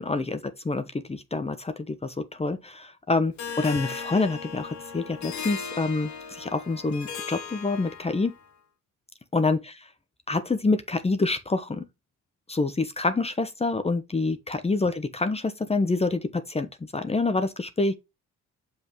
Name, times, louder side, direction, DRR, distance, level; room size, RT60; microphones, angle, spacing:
voice 1, 0.0-8.3 9.3-9.8 10.3-11.8 12.5-16.7 16.9-17.9, left 3 dB, 20° left, 1.0 m, -27 dB
Harp, 3.4-8.4, left 6 dB, 70° left, 2.5 m, -37 dB
7.1 x 5.6 x 3.2 m
cardioid pair, 90°, 30 cm